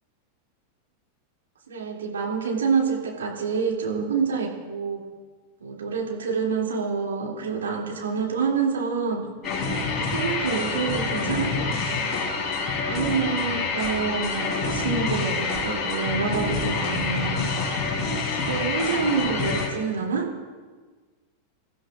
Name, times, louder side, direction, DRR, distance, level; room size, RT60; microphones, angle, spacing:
voice 1, 1.7-5.0 5.6-12.1 12.5-17.5 18.3-20.3, right 5 dB, 65° right, -2 dB, 2.8 m, -27 dB
sound 1, 9.4-19.7, left 4 dB, 30° left, 3.8 m, -27 dB
27.5 x 15.0 x 2.5 m, 1.4 s
figure-of-eight pair, 90°, 0 cm